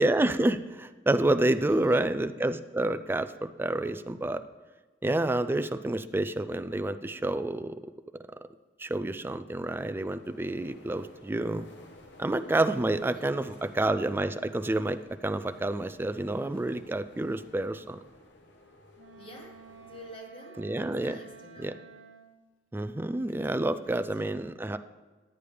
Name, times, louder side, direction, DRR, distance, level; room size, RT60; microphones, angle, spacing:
voice 1, 0.0-4.4 5.0-7.7 8.8-11.7 12.2-18.0 20.6-21.2 21.6-21.7 22.7-24.8, right 2 dB, 10° right, 10 dB, 0.3 m, -28 dB
voice 2, 1.6-2.1 13.1-13.2 19.2-21.9 23.2-24.5, left 1 dB, 30° left, 0 dB, 1.5 m, -50 dB
sound 1, 9.6-20.2, left 1 dB, 70° left, 1.1 m, -54 dB
Wind instrument woodwind instrument, 19.0-22.4, right 5 dB, 85° right, 0.9 m, -51 dB
11.0 x 8.4 x 3.3 m, 1.3 s
head